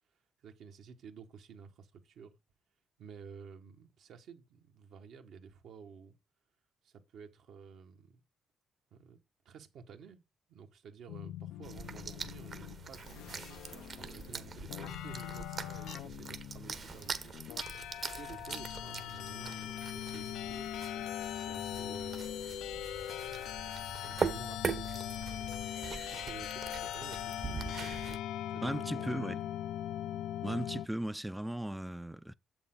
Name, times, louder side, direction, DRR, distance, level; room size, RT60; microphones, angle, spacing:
voice 1, 0.4-2.4 3.0-6.1 6.8-8.2 8.9-9.2 9.4-10.2 10.5-17.4 18.0-20.7 21.3-22.7 23.2-23.5 24.0-25.0 26.1-27.8 28.5-29.4, right 6 dB, 75° right, 1.6 m, -52 dB
sound 1, 11.1-30.9, left 12 dB, 85° left, 0.4 m, -41 dB
sound 2, 11.6-28.2, right 5 dB, 50° right, 1.1 m, -42 dB
voice 2, 28.6-29.4 30.4-32.3, right 1 dB, 5° right, 0.4 m, -36 dB
7.8 x 6.9 x 3.9 m
cardioid pair, 90°, 0 cm